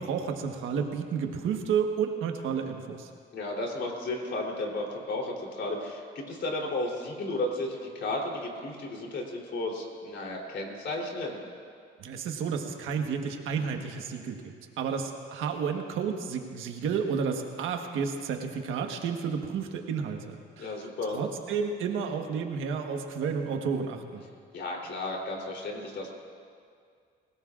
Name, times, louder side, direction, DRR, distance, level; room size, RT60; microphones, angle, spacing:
voice 1, 0.0-3.1 12.0-20.7 21.1-24.2, right 6 dB, 85° right, 4 dB, 1.4 m, -31 dB
voice 2, 3.3-11.4 20.6-21.2 24.5-26.1, left 2 dB, 65° left, 0 dB, 3.4 m, -33 dB
24.0 x 17.0 x 2.5 m, 2.2 s
cardioid pair, 90°, 20 cm